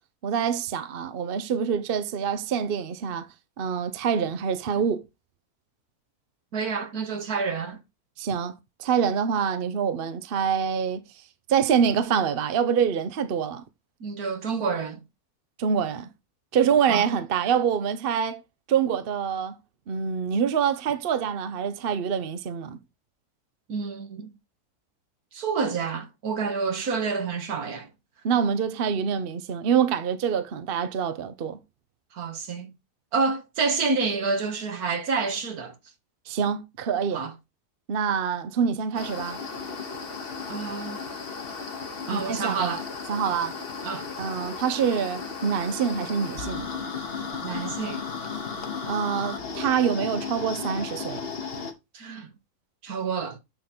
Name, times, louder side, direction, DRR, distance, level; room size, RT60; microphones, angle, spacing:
voice 1, 0.2-3.3 3.6-5.0 8.2-8.5 8.8-11.0 11.5-13.6 15.6-16.1 16.5-18.4 18.7-19.5 19.9-22.8 28.2-31.6 36.3-37.2 37.9-39.4 42.1-42.7 43.1-43.6 44.2-46.7 48.9-51.2, right 7 dB, 50° right, 0.8 m, -25 dB
voice 2, 6.5-7.8 14.0-15.0 16.9-17.0 23.7-24.3 25.3-27.9 32.1-32.7 33.1-35.7 37.1-37.3 40.5-41.1 42.1-42.9 43.8-44.1 47.4-48.1 51.9-52.3 52.8-53.4, right 5 dB, 70° right, 1.7 m, -28 dB
sound 1, 38.9-51.7, left 5 dB, 40° left, 1.2 m, -35 dB
9.4 x 3.8 x 4.3 m
omnidirectional pair, 1.6 m